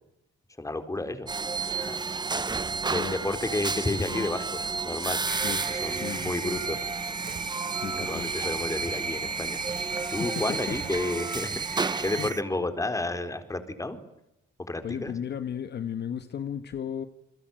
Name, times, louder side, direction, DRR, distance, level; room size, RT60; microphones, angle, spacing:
voice 1, 0.6-1.3 1.6-2.0 2.9-5.2 5.5-6.9 7.9-9.6 10.1-14.0 14.6-15.1, left 2 dB, 15° left, 8 dB, 4.3 m, -31 dB
sound 1, 1.3-12.3, right 4 dB, 20° right, 1.0 m, -32 dB
voice 2, 2.8-3.2 3.9-4.3 5.4-5.6 5.9-6.6 7.8-8.3 10.2-10.3 10.7-10.8 12.2-12.3 14.8-17.1, left 8 dB, 55° left, 10 dB, 1.5 m, -35 dB
sound 2, 3.4-5.0 5.3-6.8 7.1-7.9 8.2-10.9, right 7 dB, 55° right, 3.9 m, -47 dB
sound 3, 5.3-12.4, right 5 dB, 40° right, 1.3 m, -38 dB
29.5 x 21.5 x 9.1 m, 0.84 s
cardioid pair, 90°, 20 cm